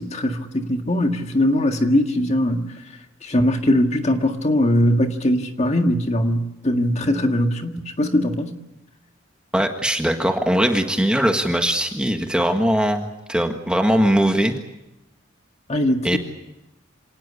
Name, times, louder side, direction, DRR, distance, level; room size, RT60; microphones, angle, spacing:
voice 1, 0.0-2.6 3.2-8.5 15.7-16.2, left 1 dB, 35° left, 1.8 m, -20 dB
voice 2, 9.5-14.5 16.0-16.2, equal, 5° right, 1.5 m, -20 dB
27.0 x 18.5 x 8.6 m
head